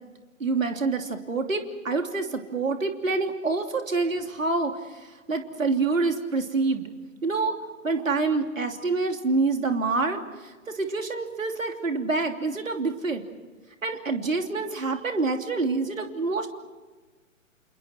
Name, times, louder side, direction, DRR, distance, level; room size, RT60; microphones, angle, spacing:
voice 1, 0.4-6.9 7.2-7.6 7.8-13.2 13.8-16.5, right 3 dB, 70° right, 5 dB, 3.1 m, -27 dB
29.0 x 29.0 x 4.6 m, 1.3 s
figure-of-eight pair, 125°, 41 cm